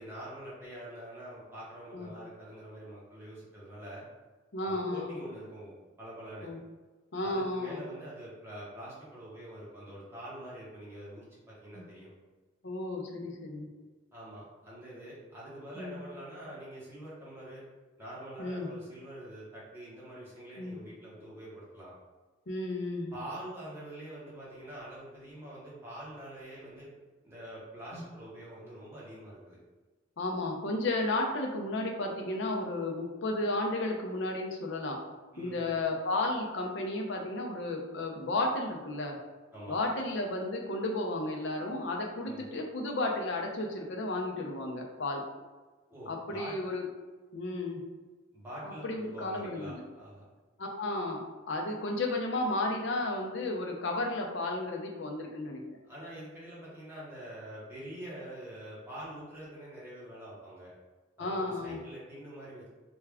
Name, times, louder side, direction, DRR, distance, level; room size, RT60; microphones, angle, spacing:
voice 1, 0.0-4.0 4.6-6.5 7.2-12.1 14.1-17.6 18.0-21.9 23.1-26.9 27.2-29.6 35.3-35.7 39.5-39.8 42.2-42.4 45.9-46.5 48.3-50.3 55.8-60.7 61.2-62.7, right 1 dB, 10° right, -8 dB, 1.0 m, -45 dB
voice 2, 4.5-5.1 6.4-6.6 7.1-7.8 11.7-11.9 12.6-13.7 15.8-16.0 18.4-18.7 20.6-20.8 22.5-23.1 27.9-28.0 30.2-35.0 35.4-39.2 39.7-45.2 46.1-46.8 47.3-47.8 48.6-49.8 50.6-55.8 61.2-61.8, left 2 dB, 60° left, 1 dB, 0.6 m, -33 dB
3.3 x 2.3 x 3.4 m, 1.3 s
head